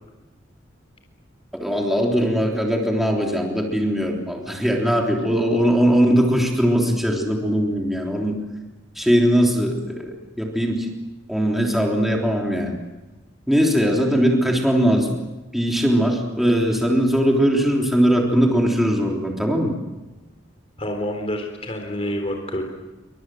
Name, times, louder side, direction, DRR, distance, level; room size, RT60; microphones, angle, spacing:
voice 1, 1.6-8.4 8.9-10.9 11.3-12.8 13.5-15.2 15.5-19.7, equal, ahead, -1 dB, 3.5 m, -20 dB
voice 2, 20.8-22.6, equal, 30° left, 3 dB, 3.7 m, -27 dB
28.5 x 25.0 x 7.8 m, 1.1 s
head